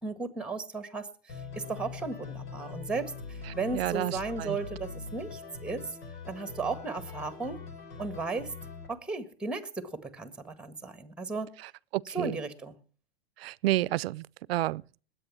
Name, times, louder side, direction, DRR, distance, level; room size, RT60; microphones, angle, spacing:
voice 1, 0.0-1.1 1.5-6.0 6.3-7.6 8.0-8.5 8.9-11.5 12.1-12.8, right 3 dB, 5° right, 1.6 m, -35 dB
sound 1, 1.3-8.9, left 5 dB, 70° left, 5.2 m, -42 dB
voice 2, 3.5-4.6 11.6-12.4 13.4-15.0, right 17 dB, 75° right, 0.7 m, -31 dB
20.0 x 8.6 x 7.1 m
supercardioid pair, 145°, 31 cm